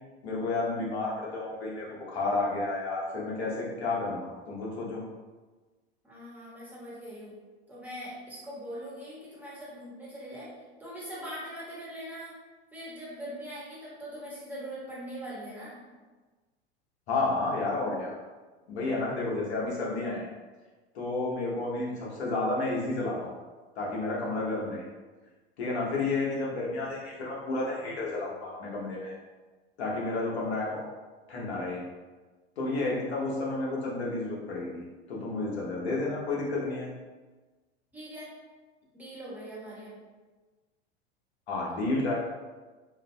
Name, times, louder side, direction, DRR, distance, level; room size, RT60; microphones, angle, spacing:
voice 1, 0.2-5.0 17.1-18.2 18.7-20.3 20.9-23.3 23.7-24.8 25.6-29.1 29.8-30.8 31.3-31.8 32.6-36.9 41.5-42.2, left 2 dB, 80° left, -4 dB, 1.0 m, -31 dB
voice 2, 6.0-7.3 7.7-10.5 10.8-12.3 12.7-15.8 37.9-38.3 38.9-39.9, equal, 5° right, -8 dB, 1.3 m, -41 dB
3.1 x 2.4 x 2.2 m, 1.3 s
hypercardioid pair, 90°, 32 cm